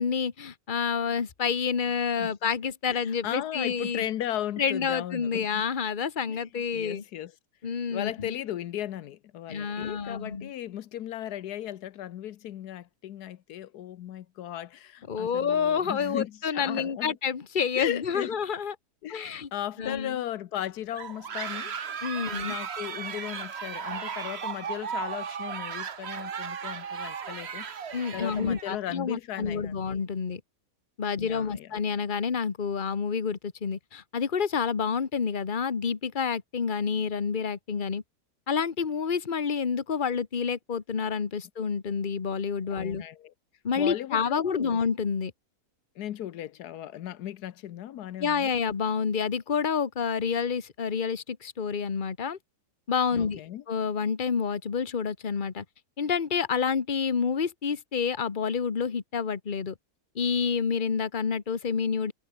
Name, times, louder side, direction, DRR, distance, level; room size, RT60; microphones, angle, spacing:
voice 1, 0.0-4.1 4.6-7.0 7.6-8.3 9.5-10.5 15.1-18.7 19.1-19.5 19.8-20.2 22.0-22.6 27.9-30.4 31.0-38.0 38.5-43.0 43.6-45.3 48.2-52.4 52.9-53.4 53.7-55.6 56.0-59.7 60.1-62.1, left 6 dB, 35° left, 1.4 m, -28 dB
voice 2, 2.9-5.6 6.3-6.4 6.7-7.3 7.9-17.2 17.7-18.4 19.0-21.7 22.2-27.7 28.1-29.9 31.2-31.7 42.7-43.3 43.7-44.8 46.0-48.5 53.1-53.6, left 12 dB, 85° left, 1.3 m, -36 dB
sound 1, 20.9-28.8, right 7 dB, 45° right, 1.3 m, -36 dB
omnidirectional pair, 1.7 m